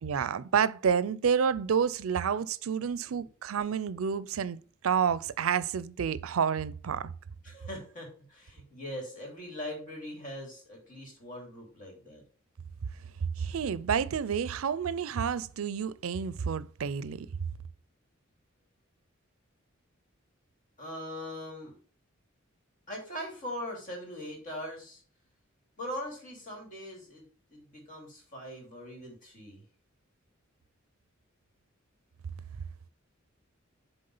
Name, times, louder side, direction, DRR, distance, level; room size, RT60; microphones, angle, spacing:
voice 1, 0.0-7.1 13.4-17.3, right 7 dB, 85° right, 0.4 m, -29 dB
voice 2, 7.4-12.2 20.8-21.8 22.9-25.0 25.8-27.2 27.5-29.6, left 1 dB, 40° left, 3.0 m, -41 dB
7.8 x 3.6 x 5.4 m
head